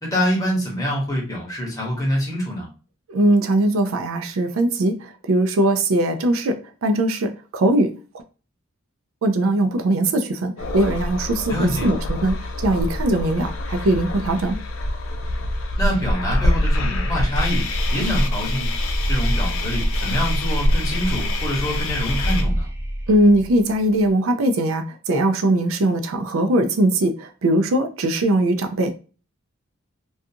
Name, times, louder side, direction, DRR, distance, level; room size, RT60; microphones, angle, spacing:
voice 1, 0.0-2.7 11.5-11.9 15.8-18.7 19.1-22.7, equal, 20° left, 0.9 m, -25 dB
voice 2, 3.1-7.9 9.2-12.4 12.6-14.6 23.1-28.9, right 1 dB, 90° right, 0.4 m, -20 dB
sound 1, 10.6-22.4, left 1 dB, 80° left, 0.5 m, -24 dB
sound 2, 16.5-24.1, equal, 10° right, 0.3 m, -28 dB
2.4 x 2.3 x 2.7 m
head